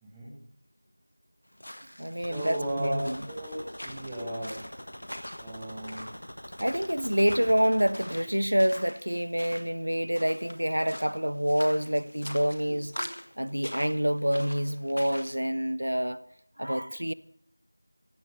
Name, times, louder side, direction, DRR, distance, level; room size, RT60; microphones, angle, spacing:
voice 1, 0.0-0.4 2.2-4.6 5.4-6.1 12.7-13.1, right 1 dB, 5° right, 0.8 m, -36 dB
sound 1, 1.5-15.4, equal, 75° left, 1.8 m, -44 dB
voice 2, 2.0-3.2 6.6-12.9 13.4-16.2 16.6-17.1, equal, 75° right, 0.8 m, -27 dB
sound 2, 2.2-8.2, equal, 55° left, 1.4 m, -44 dB
16.0 x 5.5 x 9.0 m
figure-of-eight pair, 180°, 0 cm